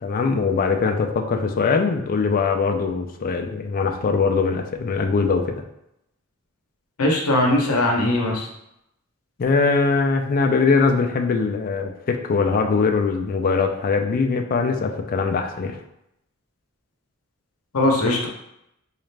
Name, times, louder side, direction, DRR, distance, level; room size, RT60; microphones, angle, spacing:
voice 1, 0.0-5.6 9.4-15.8, left 4 dB, 40° left, 5 dB, 0.3 m, -21 dB
voice 2, 7.0-8.5 17.7-18.3, left 1 dB, 70° left, 1 dB, 0.7 m, -20 dB
4.0 x 2.4 x 3.2 m, 0.83 s
head